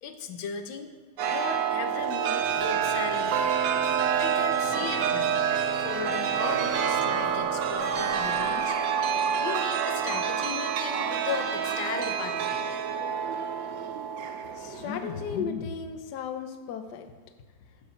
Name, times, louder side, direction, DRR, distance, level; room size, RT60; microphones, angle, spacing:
voice 1, 0.0-0.9 1.3-3.6 4.2-5.4 5.8-8.8 9.4-12.6, left 6 dB, 90° left, 7 dB, 1.7 m, -37 dB
Chime, 1.2-15.4, right 7 dB, 75° right, 1.4 m, -28 dB
sound 1, 2.3-12.6, right 2 dB, 30° right, 0.8 m, -49 dB
sound 2, 2.4-8.6, right 1 dB, 60° right, 4.7 m, -49 dB
voice 2, 14.6-17.0, left 6 dB, 65° left, 7 dB, 1.4 m, -34 dB
11.5 x 7.6 x 6.4 m, 1.3 s
omnidirectional pair, 2.1 m